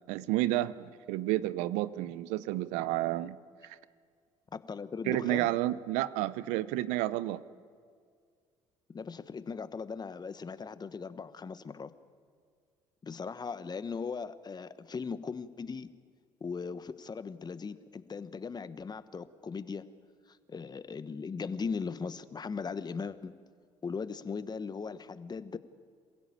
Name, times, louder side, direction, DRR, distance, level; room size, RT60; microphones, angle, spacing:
voice 1, 0.1-3.4 3.6-3.8 5.1-7.4, right 15 dB, 80° right, 17 dB, 0.7 m, -31 dB
voice 2, 4.5-5.5 8.9-11.9 13.0-15.9 16.4-19.9 20.3-23.3 23.8-25.6, left 5 dB, 35° left, 13 dB, 1.2 m, -38 dB
27.0 x 16.0 x 8.7 m, 2.1 s
hypercardioid pair, 60°, 12 cm